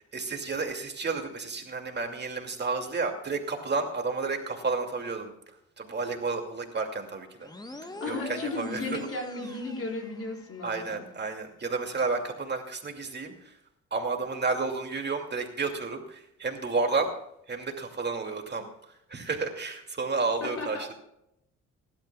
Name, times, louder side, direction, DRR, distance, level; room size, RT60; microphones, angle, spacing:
voice 1, 0.0-7.5 7.8-9.0 10.6-13.6 13.9-17.1 17.5-20.9, right 4 dB, 35° right, 3 dB, 2.5 m, -31 dB
sound 1, 7.4-10.9, left 2 dB, 15° left, 1.2 m, -45 dB
voice 2, 8.0-11.0 20.4-20.9, left 2 dB, 50° left, 1 dB, 4.3 m, -35 dB
24.0 x 12.0 x 2.4 m, 0.78 s
cardioid pair, 90°, 30 cm